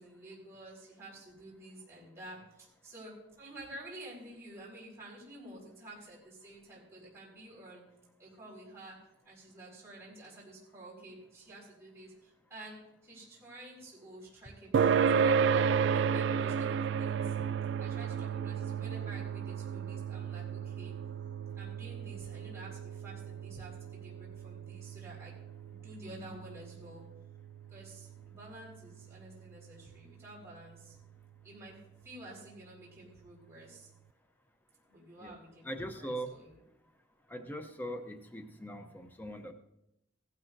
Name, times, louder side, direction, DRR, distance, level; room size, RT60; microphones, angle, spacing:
voice 1, 0.0-7.8 8.2-17.3 17.8-21.0 21.5-25.4 25.7-27.0 27.7-31.0 31.4-33.9 34.9-36.6, right 1 dB, 15° right, -7 dB, 4.8 m, -50 dB
sound 1, 14.7-29.6, right 7 dB, 65° right, 0.3 m, -33 dB
voice 2, 16.3-16.7 26.0-26.4 35.2-35.3 35.6-36.4 37.3-39.5, equal, 10° left, 5 dB, 0.7 m, -41 dB
16.5 x 12.0 x 2.6 m, 0.83 s
head